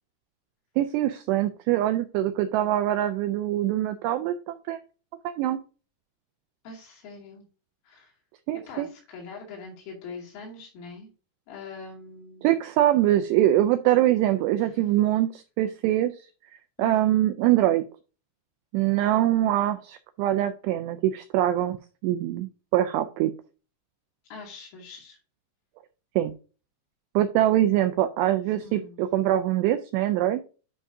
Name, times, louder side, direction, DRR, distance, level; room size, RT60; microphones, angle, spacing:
voice 1, 0.8-4.8 5.2-5.6 8.5-8.9 12.4-16.3 16.8-17.8 18.7-21.8 22.0-23.3 26.2-26.3 27.2-30.4, right 13 dB, 90° right, 8 dB, 2.4 m, -23 dB
voice 2, 6.6-7.4 7.8-8.1 8.7-11.1 11.5-12.6 14.6-14.8 16.8-17.3 24.3-25.2 28.6-29.0, left 4 dB, 90° left, -2 dB, 5.0 m, -43 dB
11.0 x 4.8 x 2.7 m, 0.35 s
omnidirectional pair, 5.5 m